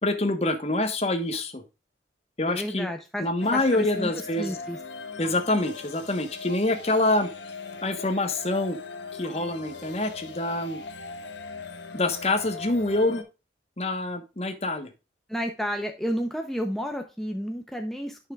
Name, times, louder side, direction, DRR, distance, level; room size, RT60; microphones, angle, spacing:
voice 1, 0.0-1.6 2.4-2.9 3.2-4.5 5.2-7.3 7.8-8.8 9.1-10.8 11.9-13.2 13.8-14.9, left 2 dB, 35° left, 8 dB, 1.1 m, -26 dB
voice 2, 2.5-4.8 15.3-18.2, equal, ahead, 3 dB, 0.6 m, -31 dB
sound 1, 3.4-13.2, left 4 dB, 85° left, 1.1 m, -40 dB
10.0 x 5.8 x 2.3 m, 0.29 s
head